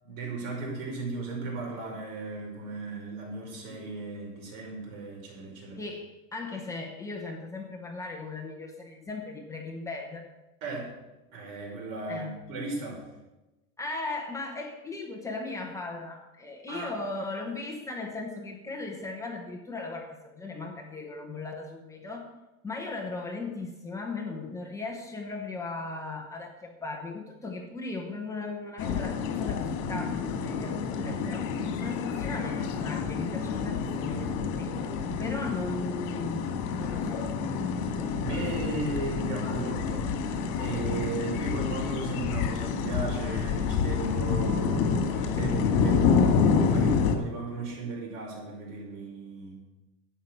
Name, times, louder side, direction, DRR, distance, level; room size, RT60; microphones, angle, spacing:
voice 1, 0.0-5.8 10.6-10.9 11.3-13.0 16.7-16.9 38.2-49.6, right 3 dB, 85° right, -1 dB, 5.6 m, -36 dB
voice 2, 5.8-10.3 12.1-12.4 13.8-22.3 22.6-34.7 35.2-37.3, left 3 dB, 10° left, 0 dB, 1.1 m, -37 dB
sound 1, 28.8-47.2, left 5 dB, 65° left, 2.1 m, -28 dB
11.5 x 8.8 x 6.5 m, 1.0 s
cardioid pair, 180°, 39 cm